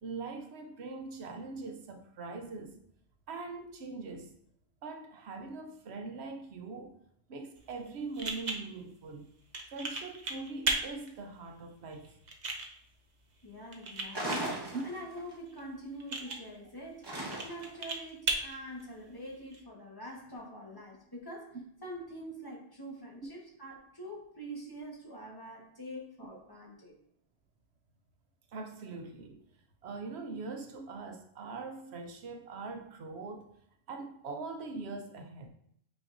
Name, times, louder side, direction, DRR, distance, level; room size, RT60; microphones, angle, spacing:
voice 1, 0.0-2.8 3.3-4.3 4.8-7.0 7.3-9.3 9.7-12.1 14.7-14.8 16.3-16.4 28.5-29.4 29.8-33.5 33.9-35.5, right 3 dB, 75° right, 5 dB, 1.0 m, -42 dB
sound 1, 7.6-19.6, right 3 dB, 45° right, 0.8 m, -39 dB
voice 2, 13.4-17.1 17.4-27.0, equal, 20° left, -2 dB, 1.3 m, -45 dB
sound 2, 14.1-15.3 17.0-17.8, right 1 dB, 25° right, 1.1 m, -37 dB
8.6 x 4.3 x 2.5 m, 0.70 s
omnidirectional pair, 1.1 m